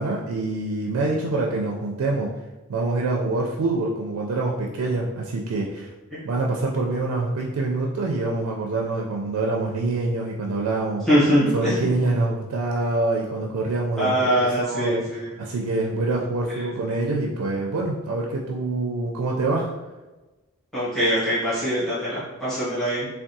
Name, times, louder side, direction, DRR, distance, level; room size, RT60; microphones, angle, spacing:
voice 1, 0.0-2.3 2.7-5.9 6.2-11.0 11.5-19.7, right 2 dB, 80° right, -1 dB, 0.4 m, -25 dB
voice 2, 11.1-12.1 14.0-15.3 20.7-23.1, equal, ahead, -12 dB, 1.0 m, -23 dB
3.5 x 2.2 x 2.6 m, 1.1 s
head